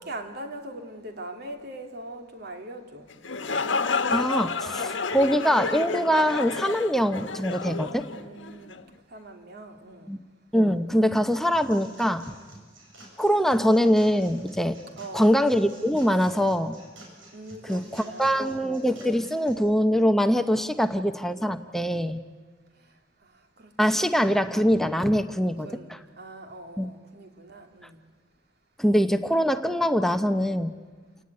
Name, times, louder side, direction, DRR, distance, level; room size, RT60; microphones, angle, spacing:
voice 1, 0.0-3.1 8.1-8.8 9.1-10.2 15.0-15.3 17.3-18.7 22.8-24.5 25.6-28.0, right 1 dB, 55° right, 5 dB, 2.8 m, -42 dB
sound 1, 3.1-8.8, left 4 dB, 75° left, 1.3 m, -30 dB
voice 2, 4.1-8.1 10.1-10.2 10.5-12.2 13.2-14.8 15.1-16.8 17.7-22.2 23.8-25.7 26.8-26.9 28.8-30.7, equal, ahead, 8 dB, 0.8 m, -23 dB
sound 2, 11.5-19.5, right 1 dB, 90° right, 8.0 m, -50 dB
29.5 x 17.5 x 9.7 m, 1.5 s
head